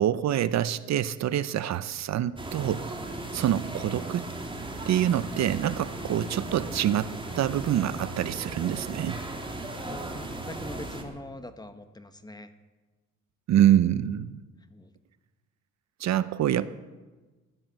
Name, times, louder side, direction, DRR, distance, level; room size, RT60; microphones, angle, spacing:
voice 1, 0.0-2.9 3.3-4.3 4.9-9.1 13.5-14.4 16.0-16.7, right 11 dB, 60° right, 15 dB, 0.7 m, -26 dB
sound 1, 2.4-11.0, right 2 dB, 15° right, 2.7 m, -37 dB
voice 2, 9.8-12.5 14.7-14.9, left 1 dB, 15° left, 10 dB, 1.3 m, -43 dB
16.0 x 11.0 x 7.5 m, 1.3 s
cardioid pair, 90°, 30 cm